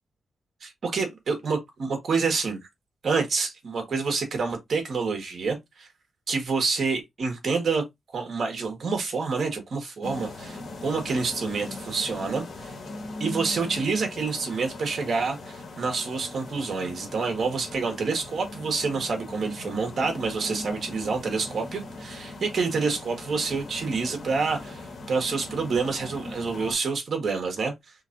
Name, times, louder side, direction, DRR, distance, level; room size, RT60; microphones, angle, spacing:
voice 1, 0.6-2.6 3.0-5.9 6.3-7.8 8.1-12.7 13.2-27.7, right 4 dB, 55° right, 1.5 m, -28 dB
sound 1, 10.0-26.7, left 2 dB, 65° left, 1.6 m, -39 dB
3.7 x 3.6 x 2.6 m
wide cardioid pair, 115°, 0 cm